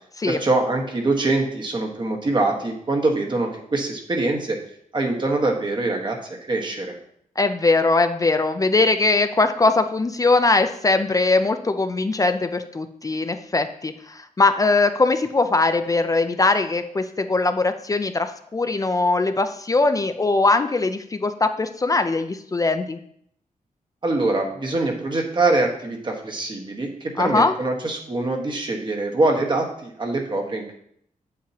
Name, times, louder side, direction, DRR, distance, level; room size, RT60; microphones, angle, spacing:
voice 1, 0.3-4.6 4.9-7.0 24.0-30.8, right 2 dB, 35° right, 2 dB, 1.4 m, -24 dB
voice 2, 7.4-23.0 27.2-27.5, left 3 dB, 25° left, 8 dB, 0.4 m, -21 dB
8.7 x 7.4 x 2.9 m, 0.69 s
wide cardioid pair, 120°, 14 cm